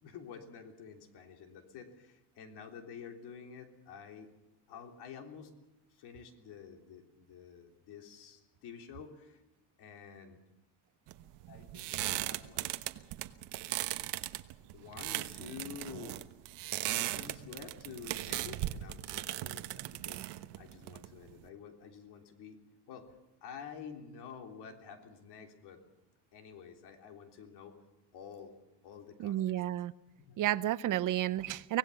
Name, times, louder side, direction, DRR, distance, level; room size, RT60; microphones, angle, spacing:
voice 1, 0.0-4.3 4.7-5.5 5.9-9.4 9.8-10.4 11.5-12.7 14.7-16.2 16.8-22.6 22.9-23.1 23.4-25.8 26.3-27.8 28.1-28.5 28.8-29.6 30.2-30.4, left 7 dB, 70° left, 4 dB, 3.6 m, -49 dB
sound 1, 11.1-21.5, right 16 dB, 70° right, 1.2 m, -38 dB
voice 2, 29.2-29.9 30.4-31.8, right 13 dB, 50° right, 16 dB, 0.7 m, -31 dB
24.5 x 18.0 x 7.1 m, 0.97 s
cardioid pair, 160°, 42 cm